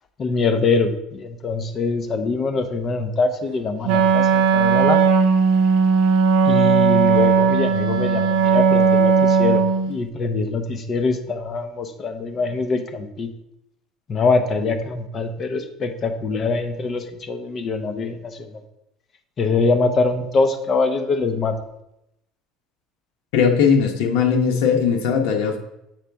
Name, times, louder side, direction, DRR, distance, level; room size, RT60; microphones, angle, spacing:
voice 1, 0.2-5.0 6.4-13.3 14.1-18.6 19.4-21.6, left 3 dB, 30° left, 7 dB, 0.6 m, -23 dB
Wind instrument woodwind instrument, 3.8-9.9, right 5 dB, 75° right, 0.7 m, -17 dB
voice 2, 23.3-25.6, left 6 dB, 85° left, 3 dB, 0.9 m, -18 dB
7.4 x 4.0 x 3.4 m, 0.84 s
cardioid pair, 155°, 0 cm